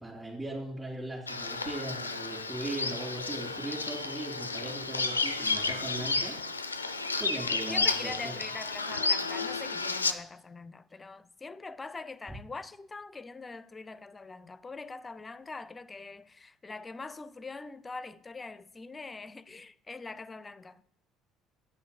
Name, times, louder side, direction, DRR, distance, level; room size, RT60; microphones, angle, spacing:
voice 1, 0.0-6.3 7.2-8.4, right 2 dB, 20° right, 3.0 m, -39 dB
Bird vocalization bird call bird song, 1.3-10.1, left 3 dB, 90° left, 0.4 m, -32 dB
voice 2, 7.7-20.8, left 3 dB, 25° left, 0.5 m, -43 dB
8.0 x 5.5 x 6.8 m
figure-of-eight pair, 55°, 0 cm